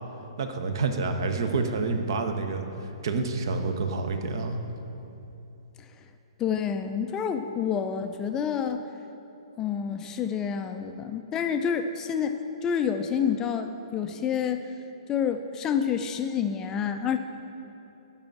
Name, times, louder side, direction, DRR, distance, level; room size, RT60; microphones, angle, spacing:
voice 1, 0.4-4.6, right 3 dB, 55° right, 7 dB, 0.7 m, -28 dB
voice 2, 6.4-8.8 9.6-14.6 15.1-17.2, left 7 dB, 20° left, 7 dB, 0.4 m, -28 dB
6.9 x 5.5 x 7.3 m, 3.0 s
figure-of-eight pair, 120°, 3 cm